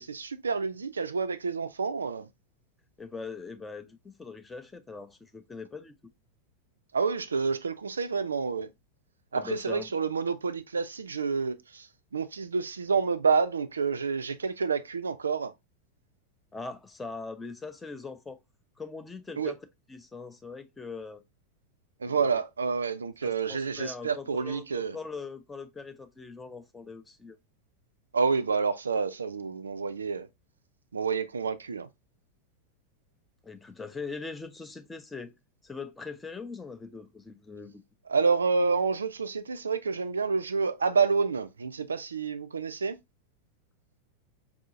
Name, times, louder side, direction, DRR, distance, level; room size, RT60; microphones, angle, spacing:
voice 1, 0.0-2.3 6.9-8.7 9.3-11.9 12.1-15.5 19.4-19.5 22.0-25.0 28.1-30.3 30.9-31.9 38.1-43.0, right 5 dB, 75° right, 0.3 m, -28 dB
voice 2, 3.0-5.9 9.3-9.9 16.5-18.4 18.8-21.2 22.1-22.4 23.2-27.4 33.4-35.3 35.6-37.8, left 4 dB, 10° left, 0.5 m, -41 dB
4.7 x 2.7 x 2.5 m
figure-of-eight pair, 90°, 0 cm